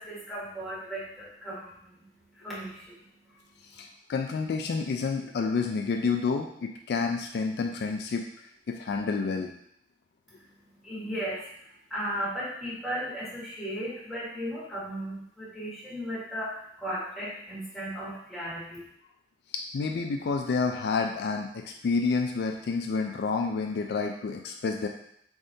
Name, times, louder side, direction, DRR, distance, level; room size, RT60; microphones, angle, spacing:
voice 1, 0.0-3.8 10.3-11.4 11.9-18.9, equal, ahead, -9 dB, 1.4 m, -36 dB
voice 2, 3.7-8.2 8.7-9.5 19.5-24.9, left 4 dB, 65° left, 3 dB, 0.3 m, -29 dB
3.9 x 3.5 x 2.7 m, 0.72 s
head